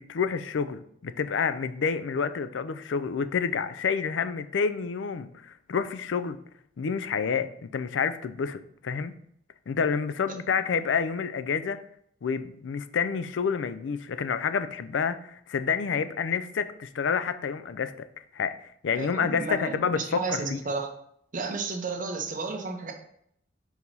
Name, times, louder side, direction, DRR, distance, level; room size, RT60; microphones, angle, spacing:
voice 1, 0.0-6.4 6.8-9.1 9.7-11.8 12.2-18.1 18.3-20.6, left 6 dB, 80° left, 13 dB, 0.4 m, -29 dB
voice 2, 18.9-20.9 21.3-22.9, right 4 dB, 45° right, 4 dB, 0.9 m, -32 dB
4.7 x 4.0 x 5.4 m, 0.71 s
head